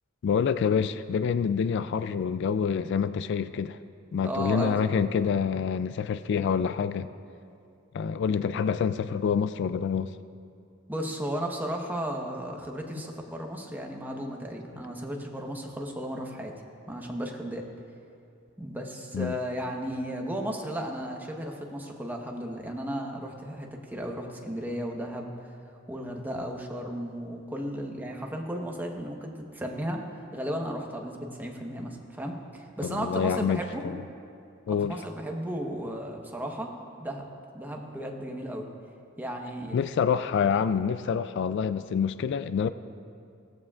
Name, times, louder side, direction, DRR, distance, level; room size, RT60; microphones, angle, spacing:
voice 1, 0.2-3.8 4.1-7.1 7.9-10.1 19.1-19.3 32.8-34.0 34.7-35.0 39.7-42.7, left 6 dB, 60° left, 13 dB, 0.3 m, -27 dB
voice 2, 4.2-4.8 10.9-16.5 16.9-17.6 18.6-25.5 25.9-30.0 30.3-33.8 34.8-36.7 37.0-37.3 37.5-38.7 39.2-39.9, equal, 10° right, 1 dB, 1.1 m, -34 dB
17.5 x 14.5 x 2.4 m, 2.5 s
head